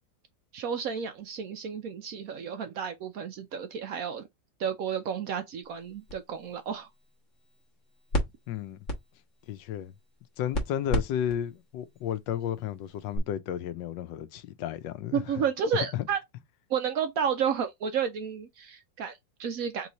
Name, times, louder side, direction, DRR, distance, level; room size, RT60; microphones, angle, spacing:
voice 1, 0.5-4.2 4.6-6.9 15.1-16.2 16.7-19.9, right 7 dB, 65° right, 0.9 m, -31 dB
sound 1, 5.6-13.2, left 1 dB, 45° left, 1.4 m, -37 dB
voice 2, 8.5-8.8 9.5-9.9 10.4-15.4 15.7-16.1, left 10 dB, 85° left, 1.3 m, -33 dB
3.8 x 3.1 x 4.0 m
omnidirectional pair, 1.9 m